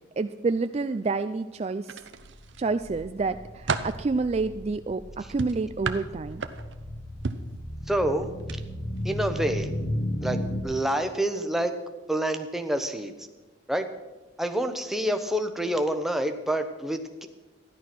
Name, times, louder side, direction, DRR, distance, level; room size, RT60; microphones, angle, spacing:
voice 1, 0.2-2.0 2.6-6.4, right 3 dB, 35° right, 10 dB, 0.3 m, -28 dB
sound 1, 1.8-2.6 3.1-4.0 5.4-6.8 7.2-7.5 8.4-8.6 9.0-9.1, right 4 dB, 80° right, 0.8 m, -32 dB
sound 2, 2.2-10.6, equal, 55° left, 1.2 m, -35 dB
voice 2, 7.9-8.3 9.0-9.7 10.2-11.8 12.1-13.1 13.7-13.9 14.4-17.3, right 1 dB, ahead, 6 dB, 0.8 m, -27 dB
14.0 x 11.0 x 6.0 m, 1.2 s
head